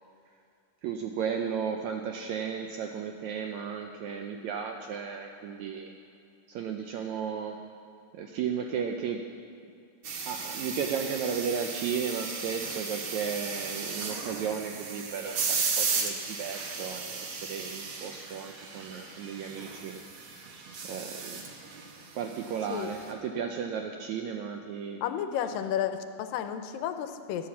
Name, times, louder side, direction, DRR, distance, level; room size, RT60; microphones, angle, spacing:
voice 1, 0.8-5.9 6.5-7.6 8.1-9.2 10.3-20.0 20.9-21.4 22.1-25.0, right 7 dB, 80° right, 4 dB, 1.7 m, -34 dB
sound 1, 10.0-23.1, right 5 dB, 65° right, 1.3 m, -35 dB
voice 2, 25.0-27.5, left 9 dB, 85° left, 9 dB, 2.4 m, -32 dB
13.5 x 10.0 x 7.2 m, 2.4 s
omnidirectional pair, 4.0 m